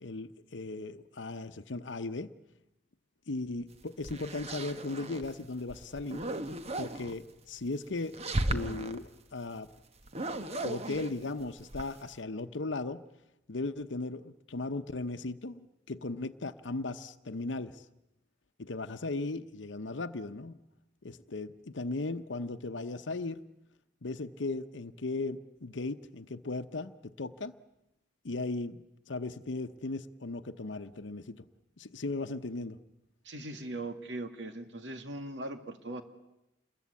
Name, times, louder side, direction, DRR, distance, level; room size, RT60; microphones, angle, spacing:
voice 1, 0.0-2.3 3.3-6.2 6.8-8.1 8.5-9.7 10.6-13.0 13.5-17.8 18.6-20.6 21.0-23.4 24.0-27.6 28.2-31.5 31.8-32.8, left 3 dB, 80° left, 9 dB, 0.9 m, -37 dB
sound 1, 3.8-5.3 5.7-7.1 8.0-9.0 10.0-12.1, right 1 dB, 35° right, 1.3 m, -36 dB
voice 2, 33.2-36.0, right 2 dB, 70° right, 7 dB, 2.3 m, -40 dB
28.0 x 21.5 x 8.4 m, 0.90 s
head